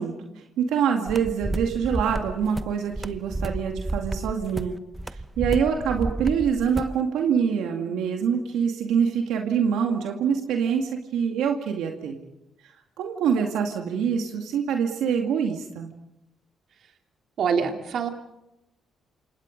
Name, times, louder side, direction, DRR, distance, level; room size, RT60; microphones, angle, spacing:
voice 1, 0.0-4.7 5.1-12.2 13.0-15.9, right 7 dB, 85° right, 3 dB, 2.3 m, -25 dB
sound 1, 1.1-7.0, right 2 dB, 15° right, 0.9 m, -31 dB
voice 2, 17.4-18.1, right 6 dB, 65° right, 4 dB, 3.1 m, -24 dB
28.5 x 27.0 x 5.3 m, 0.89 s
cardioid pair, 90°, 0 cm